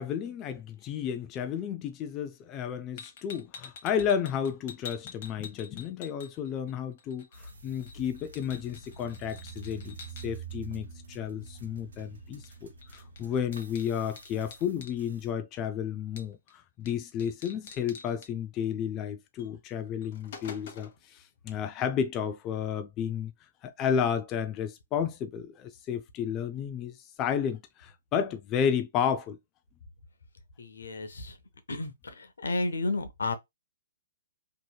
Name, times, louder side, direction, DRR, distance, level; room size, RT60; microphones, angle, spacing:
voice 1, 0.0-10.0 10.2-23.3 23.6-29.4, left 8 dB, 25° left, 0.4 m, -32 dB
sound 1, 3.0-6.7 7.0-10.3 12.4-12.6 12.8-15.0 16.2-16.5 16.9-17.0 17.2-18.3 19.4-19.5 19.9-21.0, left 6 dB, 55° left, 0.8 m, -47 dB
sound 2, 7.3-15.3, right 5 dB, 70° right, 0.8 m, -47 dB
voice 2, 30.6-31.4 31.7-33.3, left 3 dB, 85° left, 0.6 m, -32 dB
2.8 x 2.7 x 2.2 m
hypercardioid pair, 140°, 0 cm